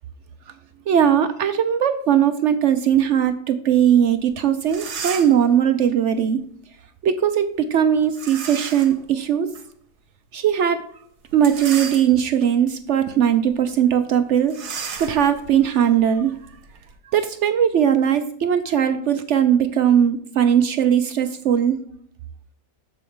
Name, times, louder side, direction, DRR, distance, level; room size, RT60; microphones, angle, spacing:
voice 1, 0.9-6.4 7.0-9.5 10.3-10.8 11.3-14.5 15.0-16.3 17.1-21.8, right 9 dB, 65° right, 9 dB, 0.7 m, -19 dB
sound 1, 4.3-4.4 4.6-5.5 8.2-9.0 9.6-9.7 11.3-12.4 13.0-13.2 13.5-13.6 14.5-16.9, right 6 dB, 85° right, 1.6 m, -34 dB
7.2 x 7.1 x 3.6 m, 0.64 s
omnidirectional pair, 1.7 m